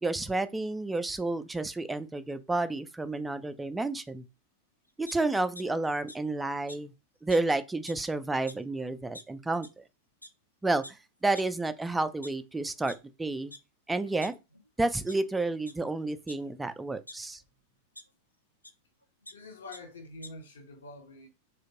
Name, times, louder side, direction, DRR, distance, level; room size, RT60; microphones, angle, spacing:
voice 1, 0.0-4.2 5.0-6.9 7.2-9.7 10.6-10.8 11.2-13.5 13.9-14.4 14.8-17.4, right 2 dB, 10° right, 0.3 m, -30 dB
sound 1, 5.0-5.6 6.1-6.2 6.7-6.8 7.3-7.4 7.7-8.0 8.5-8.6 9.1-9.2 9.6-9.7 10.2-10.3 10.8-10.9 11.3-11.4 12.0-13.0 13.5-13.6 14.0-14.7 15.1-15.2 15.6-15.7 16.3-17.2 17.9-18.0 18.6-18.7 19.0-19.3 19.7-19.8 20.1-20.3, left 1 dB, 85° left, 0.3 m, -46 dB
voice 2, 19.3-21.3, left 2 dB, 65° left, 0.7 m, -46 dB
3.3 x 2.8 x 2.8 m
figure-of-eight pair, 90°, 0 cm